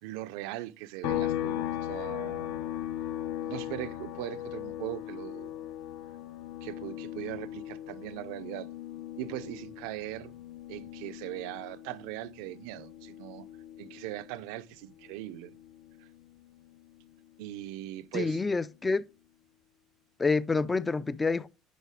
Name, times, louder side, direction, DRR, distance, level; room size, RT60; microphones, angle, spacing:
voice 1, 0.0-2.6 3.5-5.6 6.6-8.7 9.2-10.3 10.7-13.5 13.8-15.6 17.4-18.5, right 15 dB, 85° right, 0.5 m, -40 dB
sound 1, 1.0-14.6 14.9-17.1, left 12 dB, 75° left, 0.7 m, -38 dB
voice 2, 18.1-19.1 20.2-21.5, left 4 dB, 15° left, 0.3 m, -27 dB
10.0 x 4.0 x 3.5 m
cardioid pair, 155°, 0 cm